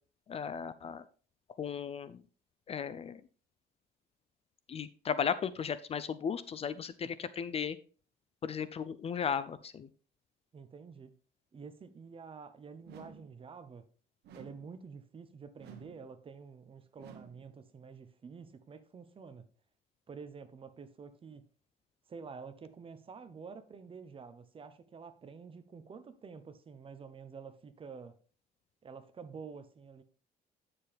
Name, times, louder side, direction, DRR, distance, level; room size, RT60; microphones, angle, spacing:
voice 1, 0.3-1.0 1.6-2.2 2.7-3.2 4.7-7.8 8.4-9.9, left 7 dB, 35° left, 0.5 m, -35 dB
voice 2, 10.5-11.1 11.5-13.9 14.3-19.5 20.1-21.4 22.1-28.2 28.8-30.0, right 5 dB, 30° right, 0.9 m, -49 dB
sound 1, 12.8-13.4 14.2-14.8 15.6-16.1 17.0-17.5, right 6 dB, 75° right, 1.3 m, -53 dB
9.5 x 6.9 x 3.5 m
cardioid pair, 110°, 17 cm